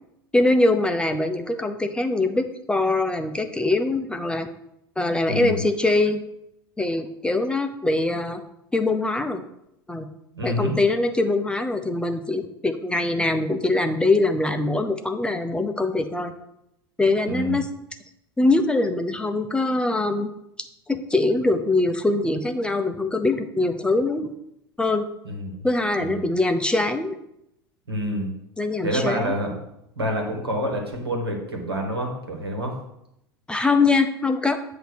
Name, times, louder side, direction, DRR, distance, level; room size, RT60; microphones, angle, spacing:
voice 1, 0.3-4.5 5.0-6.2 6.8-8.4 8.7-9.4 9.9-10.1 10.4-16.3 17.0-17.7 18.4-20.3 20.9-24.4 24.8-25.0 25.6-27.1 28.6-29.3 33.5-34.6, left 2 dB, 10° left, 6 dB, 0.6 m, -23 dB
voice 2, 5.3-5.6 10.3-10.7 17.3-17.6 25.2-25.7 26.0-26.2 27.9-28.3 28.8-29.6 30.0-32.7, equal, 85° right, 2 dB, 1.4 m, -27 dB
8.0 x 2.8 x 6.1 m, 0.81 s
figure-of-eight pair, 80°, 13 cm